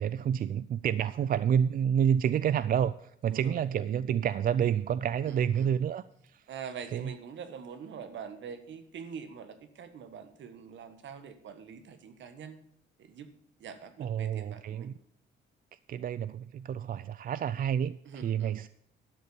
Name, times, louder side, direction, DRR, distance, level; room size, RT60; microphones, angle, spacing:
voice 1, 0.0-6.1 6.3-6.4 6.9-7.1 14.0-14.9 15.9-18.7, right 8 dB, 45° right, 16 dB, 0.4 m, -29 dB
voice 2, 3.3-3.6 5.2-5.8 6.5-12.6 13.0-13.3 13.6-14.9 18.0-18.6, right 6 dB, 70° right, 9 dB, 1.5 m, -44 dB
12.0 x 6.8 x 6.9 m, 0.71 s
cardioid pair, 90°, 20 cm